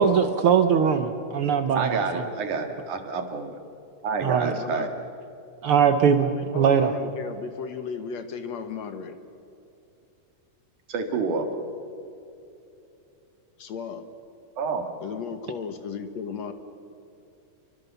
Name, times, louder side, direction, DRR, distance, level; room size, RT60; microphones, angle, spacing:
voice 1, 0.0-2.3 4.2-4.5 5.6-6.9, right 7 dB, 90° right, 8 dB, 1.2 m, -21 dB
voice 2, 1.8-3.6 4.0-4.9 10.9-11.5 14.6-14.8, right 4 dB, 65° right, 5 dB, 3.4 m, -28 dB
voice 3, 4.4-4.9 6.1-9.2 13.6-14.1 15.0-16.5, left 6 dB, 60° left, 8 dB, 2.2 m, -35 dB
29.5 x 24.0 x 7.0 m, 2.8 s
omnidirectional pair, 3.9 m